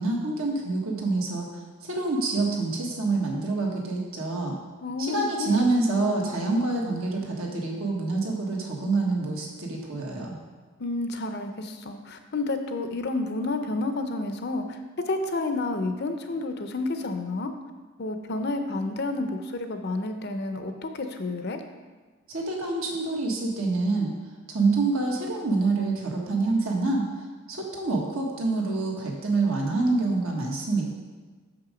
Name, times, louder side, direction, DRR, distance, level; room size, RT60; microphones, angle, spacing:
voice 1, 0.0-1.5 1.8-4.6 5.0-10.4 22.3-24.1 24.5-27.0 27.5-30.9, right 3 dB, 70° right, -1 dB, 1.4 m, -26 dB
voice 2, 4.8-5.6 5.9-6.2 10.8-14.8 15.1-17.5 18.0-21.6, left 2 dB, 50° left, 7 dB, 0.6 m, -30 dB
6.3 x 5.9 x 5.0 m, 1.4 s
head